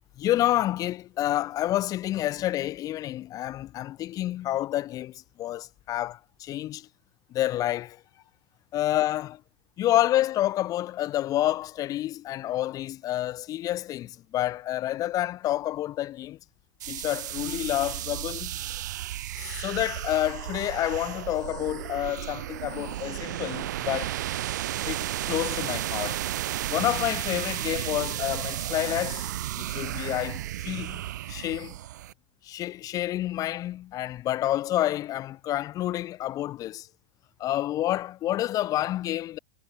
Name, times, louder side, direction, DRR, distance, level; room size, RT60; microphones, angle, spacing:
voice 1, 0.2-6.9 7.3-8.0 8.7-9.4 9.8-16.4 16.9-18.6 19.4-24.2 24.8-26.2 26.7-29.3 29.6-31.8 32.4-36.9 37.4-39.4, left 14 dB, 35° left, 2.2 m, -29 dB
sound 1, 16.8-32.1, right 13 dB, 60° right, 0.5 m, -33 dB
figure-of-eight pair, 95°, 11 cm